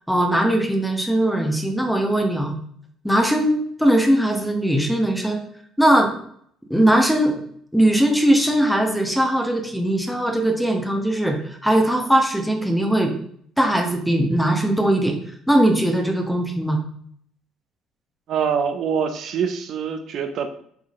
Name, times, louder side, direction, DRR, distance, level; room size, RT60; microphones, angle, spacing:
voice 1, 0.1-2.5 3.0-5.4 5.8-6.1 6.7-7.4 7.7-13.1 13.6-15.2 15.5-16.8, right 1 dB, ahead, 2 dB, 0.8 m, -20 dB
voice 2, 18.3-20.5, right 7 dB, 55° right, 7 dB, 0.5 m, -24 dB
4.6 x 4.0 x 2.4 m, 0.64 s
figure-of-eight pair, 50°, 0 cm